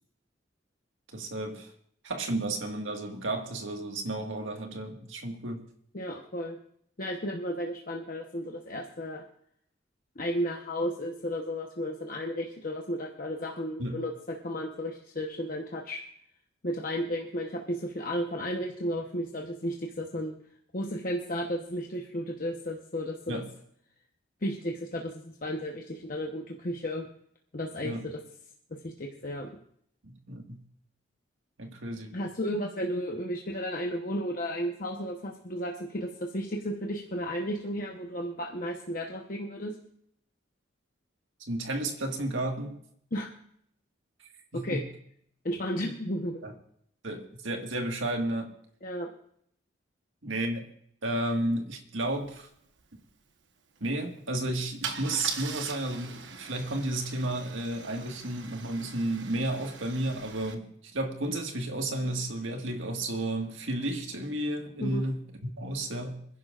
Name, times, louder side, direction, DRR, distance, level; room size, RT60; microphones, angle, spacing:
voice 1, 1.1-1.7 2.0-5.7 13.8-14.0 23.3-23.5 27.8-28.1 30.0-30.6 31.6-32.2 41.5-42.8 44.5-44.9 46.4-46.5 47.0-48.5 50.2-50.6 51.0-52.5 53.8-66.3, right 1 dB, 85° right, 3 dB, 1.8 m, -32 dB
voice 2, 5.9-6.6 7.0-9.2 10.2-16.0 16.6-20.4 20.7-23.4 24.4-27.1 27.5-28.2 28.8-29.5 32.1-39.7 43.1-43.3 44.6-44.8 45.4-46.4 48.8-49.1 64.8-65.1, equal, 45° left, 1 dB, 1.0 m, -33 dB
Car / Engine starting / Idling, 52.2-52.3 52.6-52.8 54.8-60.5, right 6 dB, 70° right, 1.2 m, -41 dB
26.0 x 11.0 x 2.5 m, 0.69 s
head